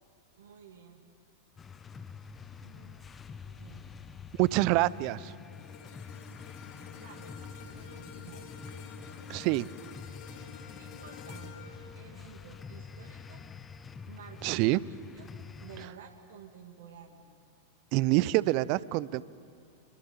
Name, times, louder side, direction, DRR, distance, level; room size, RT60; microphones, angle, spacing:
voice 1, 0.4-1.0 2.6-3.9 6.9-8.5 10.7-13.4 14.1-15.3 15.6-17.2, right 7 dB, 60° right, 3 dB, 2.4 m, -52 dB
sound 1, 1.6-15.9, left 6 dB, 20° left, 1.0 m, -47 dB
voice 2, 4.4-5.3 9.3-9.7 14.4-14.8 17.9-19.2, right 18 dB, 45° right, 21 dB, 0.6 m, -26 dB
sound 2, 5.5-13.9 14.3-14.5, left 5 dB, 40° left, 2.7 m, -50 dB
26.5 x 22.0 x 8.9 m, 2.3 s
figure-of-eight pair, 90°, 0 cm